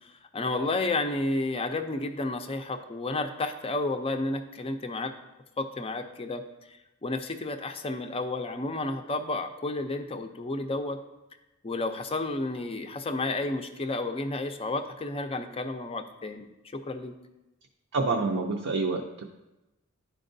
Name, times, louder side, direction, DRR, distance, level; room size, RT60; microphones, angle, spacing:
voice 1, 0.0-5.1 5.6-6.4 7.0-11.0 11.6-16.5 16.7-17.1, left 2 dB, 25° left, 7 dB, 0.4 m, -31 dB
voice 2, 17.9-19.2, right 3 dB, 65° right, 1 dB, 0.5 m, -27 dB
11.0 x 4.5 x 2.6 m, 1.0 s
head